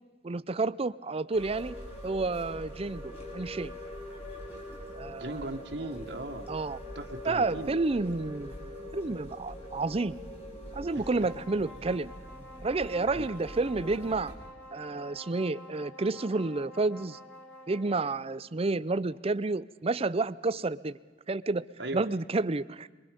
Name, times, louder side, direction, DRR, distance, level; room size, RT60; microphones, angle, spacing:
voice 1, 0.2-1.8 2.0-3.8 5.0-5.5 6.5-6.8 7.3-10.2 10.7-12.1 12.6-14.3 14.7-17.2 17.7-21.0 21.3-21.6 21.9-22.9, right 3 dB, 35° right, 15 dB, 0.6 m, -30 dB
sound 1, 1.3-14.3, equal, 40° left, 5.5 m, -43 dB
voice 2, 5.2-6.5 7.0-7.7 13.1-13.3 21.8-22.0, right 2 dB, 75° right, 2 dB, 1.8 m, -37 dB
sound 2, 10.8-18.2, equal, 10° left, 3.0 m, -49 dB
24.0 x 22.5 x 5.3 m, 1.3 s
head